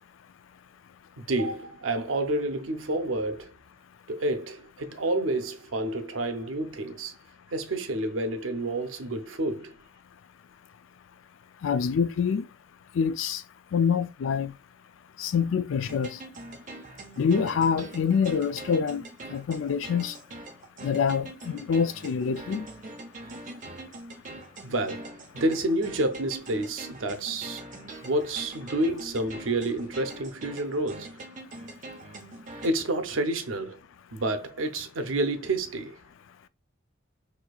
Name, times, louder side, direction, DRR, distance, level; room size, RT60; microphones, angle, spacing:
voice 1, 1.2-3.5 4.1-7.1 7.5-9.7 24.6-27.6 28.0-31.2 32.6-33.8 34.1-36.0, right 1 dB, 85° right, 0.7 m, -29 dB
voice 2, 11.6-12.5 12.9-13.4 13.7-14.5 15.2-16.2 17.2-19.0 19.3-20.1 20.8-22.7, left 6 dB, 75° left, 0.4 m, -26 dB
sound 1, 15.8-32.7, right 2 dB, 40° right, 0.8 m, -43 dB
4.3 x 2.7 x 2.3 m
head